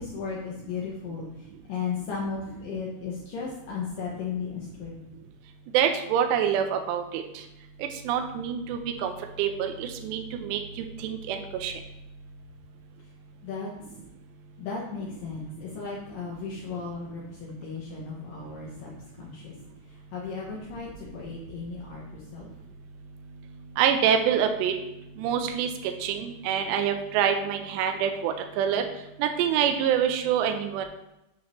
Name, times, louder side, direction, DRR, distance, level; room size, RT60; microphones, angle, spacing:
voice 1, 0.0-5.1 13.4-13.7 14.6-19.5 19.9-22.5, left 5 dB, 85° left, -4 dB, 1.9 m, -35 dB
voice 2, 5.7-7.2 7.8-9.1 9.4-11.7 23.8-24.7 25.2-25.7 26.0-28.8 29.2-30.9, right 8 dB, 85° right, 5 dB, 2.5 m, -26 dB
8.9 x 5.8 x 3.1 m, 0.89 s
omnidirectional pair, 5.6 m